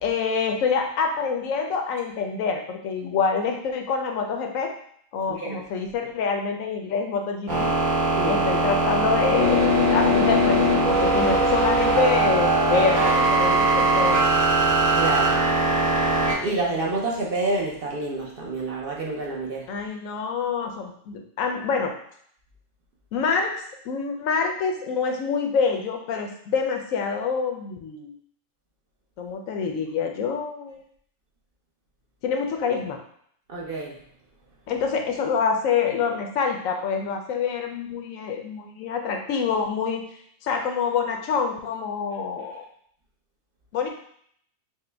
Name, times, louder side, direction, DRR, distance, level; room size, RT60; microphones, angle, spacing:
voice 1, 0.0-4.7 5.1-7.7 8.2-14.2 19.7-21.9 23.1-28.1 29.2-30.8 32.2-33.0 34.7-40.0 40.4-42.7 43.7-43.9, left 5 dB, 90° left, 3 dB, 1.0 m, -26 dB
sound 1, 7.5-16.3, right 2 dB, 75° right, 1.8 m, -20 dB
voice 2, 14.9-15.4 16.4-19.7 33.5-33.9, right 2 dB, 50° right, -3 dB, 0.8 m, -28 dB
4.6 x 2.1 x 3.3 m, 0.65 s
omnidirectional pair, 1.3 m